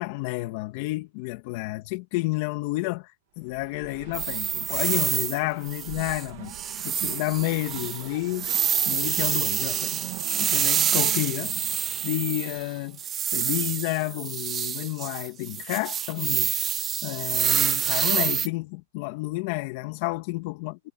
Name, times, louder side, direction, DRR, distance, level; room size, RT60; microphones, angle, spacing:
voice 1, 0.0-3.1 3.4-6.5 6.8-8.5 8.9-10.0 10.3-11.6 12.0-13.0 13.3-16.5 17.0-20.9, left 21 dB, 45° left, 2.7 m, -30 dB
Race car auto racing, 3.4-13.1, right 22 dB, 50° right, 1.8 m, -43 dB
sound 1, 4.1-5.4 5.6-6.2 6.5-12.6 13.0-18.5, right 9 dB, 20° right, 1.2 m, -27 dB
hypercardioid pair, 145°, 0 cm